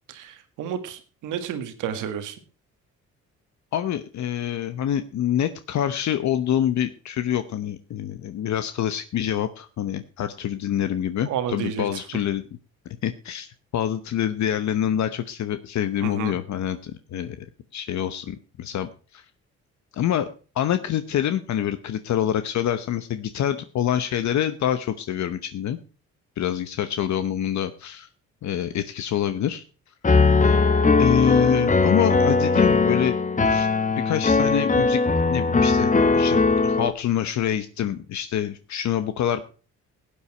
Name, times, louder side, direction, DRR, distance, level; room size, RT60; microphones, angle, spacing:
voice 1, 0.1-2.4 11.2-12.0 16.0-16.4, right 9 dB, 90° right, 9 dB, 1.9 m, -31 dB
voice 2, 3.7-12.4 13.0-17.4 17.7-19.2 19.9-20.3 20.5-25.8 26.4-28.1 28.4-29.6 31.0-33.2 33.4-33.7 34.0-35.0 35.3-36.4 36.6-39.4, left 10 dB, 65° left, 10 dB, 0.9 m, -26 dB
Piano, 30.0-36.9, left 4 dB, 25° left, 1.1 m, -19 dB
16.0 x 8.7 x 4.4 m, 0.36 s
cardioid pair, 90°, 30 cm